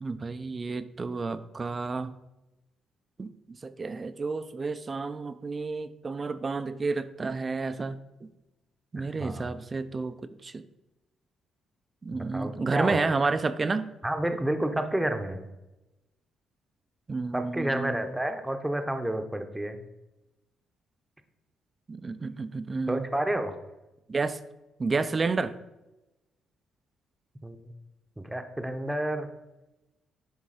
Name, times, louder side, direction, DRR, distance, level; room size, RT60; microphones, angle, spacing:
voice 1, 0.0-2.1 3.2-3.3 3.6-8.3 8.9-10.2 10.4-10.6 12.0-13.9 17.1-18.0 21.9-23.1 24.1-24.4 24.8-25.6, right 4 dB, 30° right, 13 dB, 0.4 m, -30 dB
voice 2, 8.9-9.5 12.1-13.0 14.0-15.5 17.3-19.8 22.9-23.5 27.4-27.6 28.2-29.3, right 1 dB, 10° right, 7 dB, 0.8 m, -30 dB
9.9 x 3.4 x 4.9 m, 0.99 s
cardioid pair, 90°, 0 cm